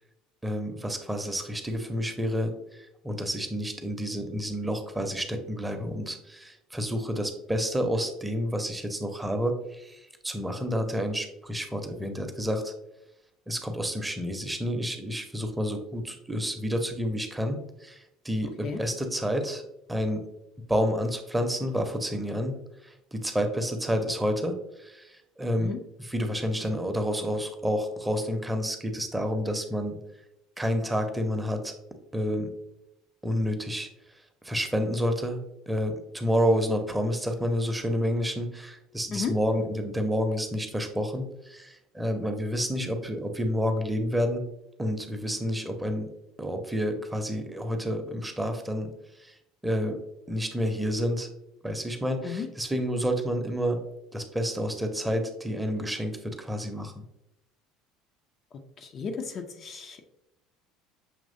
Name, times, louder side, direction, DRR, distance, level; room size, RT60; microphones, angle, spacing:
voice 1, 0.4-12.7 13.5-19.6 19.9-20.3 20.7-22.5 22.8-30.0 30.6-31.7 32.1-32.5 33.2-33.9 34.4-44.4 44.8-46.1 46.4-48.9 49.2-49.4 49.6-50.0 50.3-51.3 51.6-53.8 54.1-57.0, equal, 10° right, 5 dB, 0.7 m, -29 dB
voice 2, 58.8-60.1, left 6 dB, 40° left, 4 dB, 0.5 m, -34 dB
6.4 x 3.0 x 2.6 m, 0.86 s
figure-of-eight pair, 65°, 0 cm